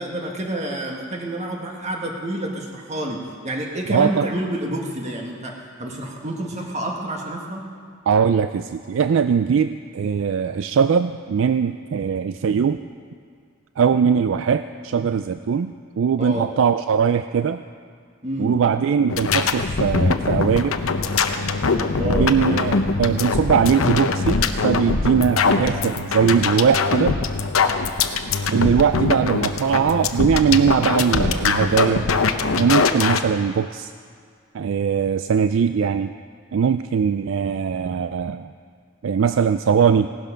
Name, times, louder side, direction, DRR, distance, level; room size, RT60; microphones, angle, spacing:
voice 1, 0.0-3.2 3.4-5.5 5.8-7.6 16.2-16.5 18.2-18.6 22.0-22.3, right 1 dB, 35° right, 0 dB, 1.8 m, -28 dB
voice 2, 3.9-4.3 8.1-12.8 13.8-17.6 18.4-20.8 22.0-27.2 28.5-32.1 32.5-33.9 34.5-36.1 36.5-38.5 39.0-40.1, right 6 dB, 65° right, 10 dB, 0.3 m, -20 dB
sound 1, 19.1-33.2, left 4 dB, 75° left, 0.8 m, -22 dB
17.0 x 12.5 x 5.1 m, 2.1 s
head